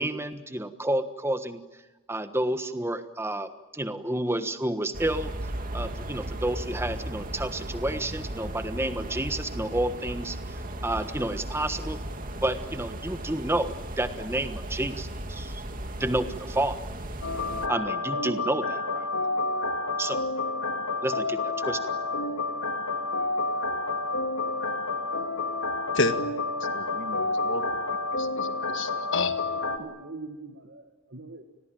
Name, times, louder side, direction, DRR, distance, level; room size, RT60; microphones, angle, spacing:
voice 1, 0.0-1.6 2.1-5.3 5.7-12.0 12.4-15.6 16.0-16.8 17.7-19.0 20.0-20.2 21.0-21.8, right 1 dB, 10° right, 1.3 m, -30 dB
sound 1, 4.9-17.7, right 1 dB, 40° right, 2.2 m, -36 dB
sound 2, 17.2-29.8, left 3 dB, 80° left, 2.7 m, -29 dB
voice 2, 26.7-27.6 28.2-29.3, left 3 dB, 55° left, 1.9 m, -30 dB
voice 3, 29.5-31.4, right 3 dB, 55° right, 1.9 m, -43 dB
29.5 x 20.5 x 9.1 m
head